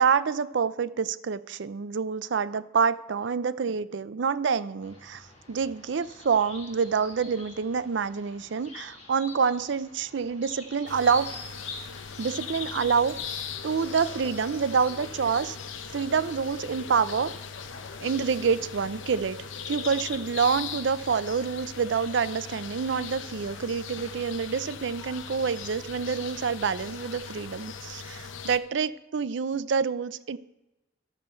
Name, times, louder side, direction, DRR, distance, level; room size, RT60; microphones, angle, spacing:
voice 1, 0.0-11.3 12.2-13.2 13.6-15.6 15.9-17.3 18.0-19.4 19.7-30.4, right 6 dB, 70° right, 16 dB, 0.4 m, -27 dB
sound 1, 4.8-19.2, left 3 dB, 35° left, 3.9 m, -47 dB
sound 2, 10.9-28.6, left 6 dB, 85° left, 0.8 m, -39 dB
14.0 x 6.8 x 4.4 m, 1.0 s
head